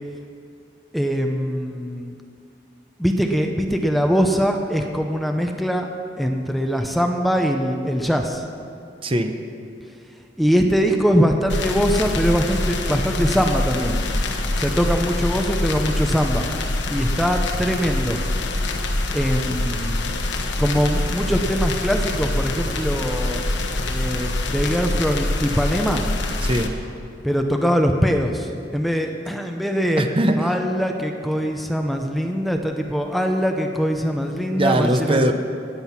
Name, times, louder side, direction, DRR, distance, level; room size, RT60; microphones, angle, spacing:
voice 1, 0.9-2.2 3.0-5.9 6.2-8.4 10.4-14.0 14.6-16.5 16.9-18.2 19.1-20.1 20.6-23.4 23.9-26.1 27.2-30.0 30.4-35.3, equal, ahead, 3 dB, 0.7 m, -22 dB
voice 2, 9.0-9.3 26.4-26.7 30.0-30.5 34.6-35.3, right 1 dB, 30° right, 7 dB, 0.7 m, -20 dB
sound 1, 11.5-26.7, left 2 dB, 80° left, 1.2 m, -25 dB
20.0 x 7.9 x 5.8 m, 2.4 s
head